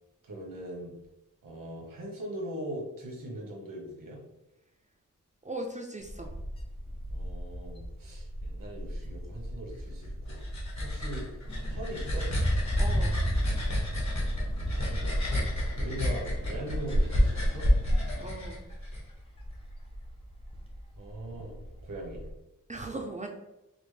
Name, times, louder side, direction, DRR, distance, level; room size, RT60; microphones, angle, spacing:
voice 1, 0.2-0.9 1.4-4.2 7.1-11.3 11.7-12.3 14.5-17.7 21.0-21.5 21.8-22.2, right 1 dB, 90° right, -1 dB, 1.1 m, -41 dB
voice 2, 5.4-6.3 12.8-13.2 18.2-18.6 22.7-23.3, right 2 dB, 25° right, 1 dB, 0.3 m, -38 dB
Wind, 6.0-22.3, equal, 15° left, 0.6 m, -35 dB
sound 1, 10.0-19.0, equal, 60° left, 1.1 m, -30 dB
sound 2, 11.4-18.3, left 1 dB, 90° left, 1.1 m, -44 dB
5.1 x 2.0 x 3.2 m, 0.92 s
wide cardioid pair, 150°, 32 cm